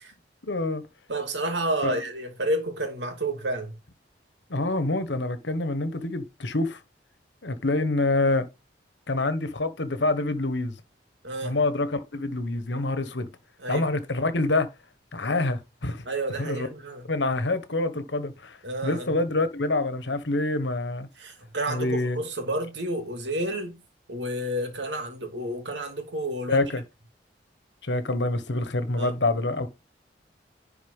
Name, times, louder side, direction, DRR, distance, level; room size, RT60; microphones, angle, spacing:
voice 1, 0.4-0.8 1.8-2.0 4.5-6.8 7.4-8.5 9.1-10.7 11.4-13.3 13.7-14.7 15.1-16.0 16.4-16.7 17.1-21.1 21.7-22.2 26.5-26.8 27.8-29.7, left 2 dB, 85° left, 1.4 m, -26 dB
voice 2, 1.1-3.8 11.2-11.6 13.6-13.8 16.1-17.1 18.6-19.1 21.2-23.8 24.1-26.6 29.0-29.1, right 1 dB, 80° right, 2.6 m, -30 dB
10.5 x 4.4 x 5.5 m
head